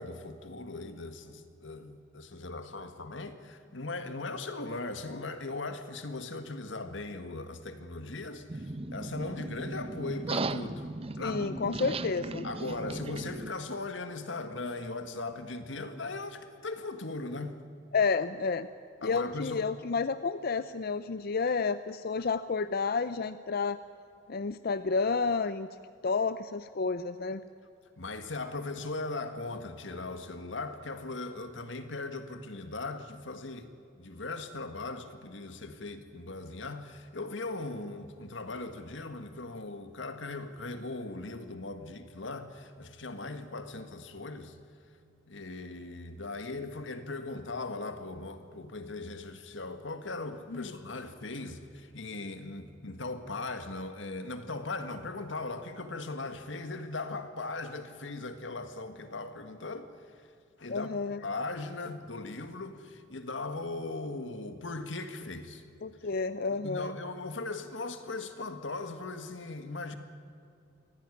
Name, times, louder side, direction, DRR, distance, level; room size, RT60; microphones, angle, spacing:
voice 1, 0.0-10.9 11.2-11.7 12.4-17.6 19.0-19.7 28.0-33.7 33.9-44.6 45.3-59.9 60.6-61.0 61.2-65.6 66.5-70.0, left 3 dB, 90° left, 1.8 m, -39 dB
sound 1, 8.5-13.5, right 2 dB, 30° right, 0.7 m, -37 dB
voice 2, 11.2-12.5 17.9-18.7 19.0-23.8 24.3-25.8 26.0-27.4 50.5-50.7 60.7-61.2 65.8-67.0, left 4 dB, 55° left, 0.6 m, -30 dB
24.0 x 16.5 x 9.9 m
head